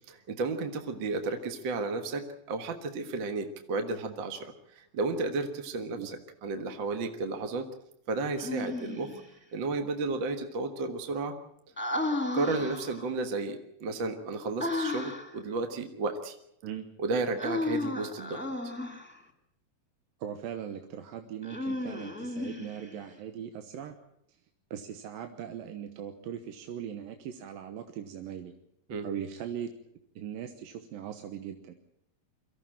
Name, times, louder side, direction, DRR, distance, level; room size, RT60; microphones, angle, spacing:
voice 1, 0.1-7.7 8.1-9.1 9.5-11.3 12.3-16.4 17.0-18.4 28.9-29.1, right 3 dB, 50° right, 6 dB, 1.5 m, -33 dB
Human voice, 8.4-9.3 11.8-13.1 14.6-15.4 17.4-19.2 21.4-23.0, left 2 dB, 5° left, 1.7 m, -34 dB
voice 2, 20.2-24.0 24.7-28.5 29.0-29.7 30.2-31.7, right 9 dB, 80° right, 7 dB, 2.8 m, -39 dB
24.5 x 15.0 x 8.9 m, 0.79 s
omnidirectional pair, 4.1 m